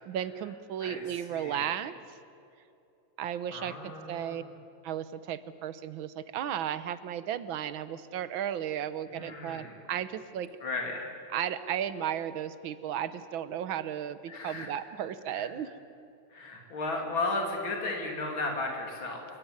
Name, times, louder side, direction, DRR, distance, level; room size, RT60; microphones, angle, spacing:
voice 1, 0.0-1.9 3.2-4.4 4.8-10.5 11.3-15.7, right 10 dB, 90° right, 14 dB, 1.7 m, -34 dB
voice 2, 0.8-1.7 3.5-4.5 9.1-9.8 10.6-11.1 14.3-14.7 15.3-15.5 16.3-19.3, left 2 dB, 85° left, 1 dB, 3.5 m, -35 dB
27.0 x 15.0 x 9.6 m, 2.6 s
omnidirectional pair, 2.1 m